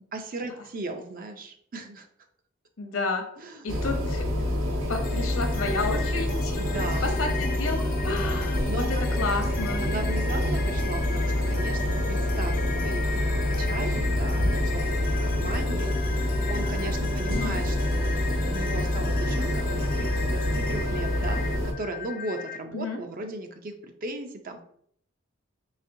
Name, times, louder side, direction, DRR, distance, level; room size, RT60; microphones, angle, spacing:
voice 1, 0.1-2.1 3.4-3.6 6.6-7.1 8.1-9.5 9.8-24.6, right 2 dB, 40° right, 6 dB, 0.5 m, -37 dB
voice 2, 2.8-3.2 3.6-4.3 4.9-6.6 7.0-9.8 17.3-17.6 22.7-23.0, left 3 dB, 75° left, 4 dB, 0.7 m, -31 dB
sound 1, 3.7-21.7, left 1 dB, 70° right, 0.8 m, -27 dB
sound 2, 4.9-22.6, left 6 dB, 40° left, 0.3 m, -38 dB
4.1 x 3.5 x 2.6 m, 0.65 s
head